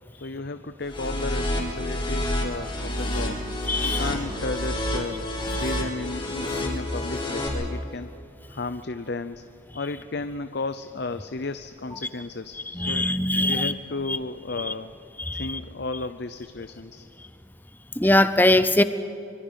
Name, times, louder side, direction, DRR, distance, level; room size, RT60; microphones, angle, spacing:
voice 1, 0.2-3.4 3.8-5.2 5.6-8.1 8.5-9.4 9.7-13.1 13.5-14.9 15.3-17.1, left 3 dB, 55° left, 10 dB, 0.7 m, -33 dB
sound 1, 0.9-7.5, left 1 dB, 25° left, 4.6 m, -28 dB
voice 2, 3.7-4.0 12.7-13.7 14.1-14.2 14.7-14.8 15.2-15.6 18.0-18.8, left 1 dB, 10° left, 12 dB, 0.8 m, -21 dB
25.0 x 24.0 x 5.7 m, 2.7 s
head